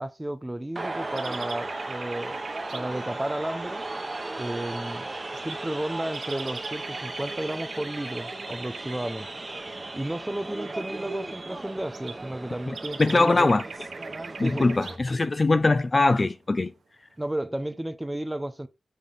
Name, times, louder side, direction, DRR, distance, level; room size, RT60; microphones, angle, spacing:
voice 1, 0.0-2.4 2.7-3.9 4.4-5.1 5.4-9.3 9.9-13.5 14.4-14.7 17.2-18.7, right 1 dB, 10° right, 0.6 m, -33 dB
sound 1, 0.8-15.0, right 2 dB, 25° right, 1.0 m, -36 dB
sound 2, 0.8-3.5 5.1-9.0 10.6-10.7 11.7-15.0, right 5 dB, 85° right, 1.0 m, -42 dB
voice 2, 12.7-13.6 14.4-16.7, left 3 dB, 30° left, 0.4 m, -22 dB
7.4 x 3.3 x 5.4 m
wide cardioid pair, 130°, 0 cm